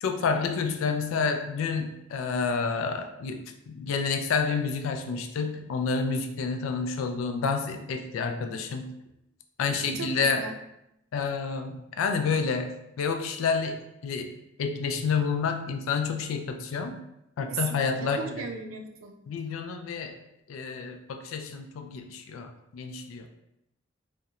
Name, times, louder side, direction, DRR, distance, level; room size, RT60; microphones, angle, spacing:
voice 1, 0.0-8.9 9.6-10.5 11.1-14.3 14.6-17.0 17.4-18.4 19.3-20.2 20.5-23.3, left 5 dB, 85° left, 6 dB, 0.3 m, -29 dB
voice 2, 9.9-10.5 17.5-19.2, right 5 dB, 90° right, 4 dB, 0.4 m, -36 dB
2.8 x 2.1 x 2.4 m, 0.83 s
head